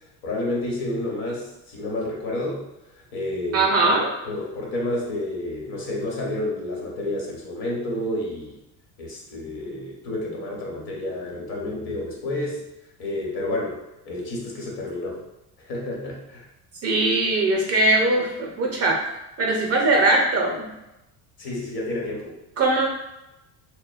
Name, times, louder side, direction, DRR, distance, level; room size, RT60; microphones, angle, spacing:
voice 1, 0.2-2.6 3.1-4.0 4.2-8.5 9.0-12.6 13.0-13.8 14.0-15.2 15.7-16.5 21.4-22.4, left 1 dB, 55° left, -3 dB, 1.0 m, -30 dB
voice 2, 3.5-4.1 16.8-19.0 19.4-20.7 22.6-22.9, right 2 dB, 35° right, 0 dB, 0.5 m, -20 dB
2.5 x 2.1 x 2.3 m, 0.92 s
supercardioid pair, 85°, 45 cm